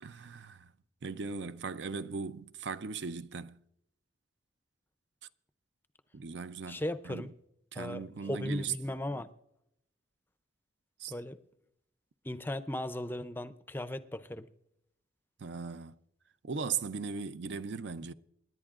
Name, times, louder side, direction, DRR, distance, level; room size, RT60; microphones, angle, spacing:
voice 1, 0.0-0.7 1.0-3.6 6.1-7.3 7.7-8.7 11.0-11.1 15.4-16.0 16.4-18.1, right 5 dB, 70° right, 0.5 m, -38 dB
voice 2, 6.7-7.3 7.7-9.3 11.1-11.4 12.2-14.5, left 1 dB, 10° left, 0.5 m, -37 dB
28.0 x 11.0 x 2.5 m
head